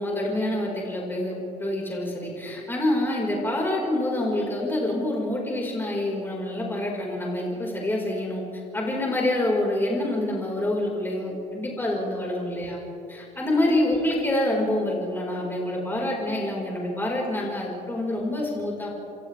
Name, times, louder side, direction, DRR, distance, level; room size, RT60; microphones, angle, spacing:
voice 1, 0.0-8.4 8.7-12.8 13.1-18.9, left 1 dB, 15° left, -3 dB, 5.1 m, -26 dB
27.5 x 27.5 x 3.6 m, 2.8 s
cardioid pair, 110°, 17 cm